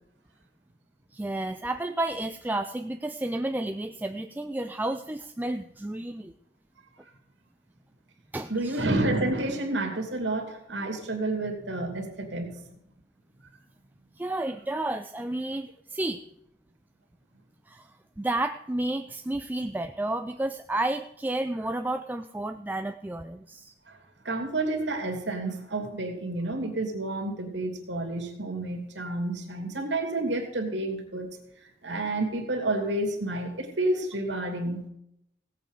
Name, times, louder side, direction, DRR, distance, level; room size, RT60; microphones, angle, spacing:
voice 1, 1.1-6.3 8.3-8.8 14.2-16.2 17.7-23.7, right 2 dB, 10° right, 7 dB, 0.4 m, -31 dB
voice 2, 8.5-12.6 23.9-24.0 24.2-31.3 31.8-34.9, right 2 dB, 80° right, 3 dB, 2.7 m, -30 dB
17.0 x 8.4 x 5.0 m, 0.78 s
head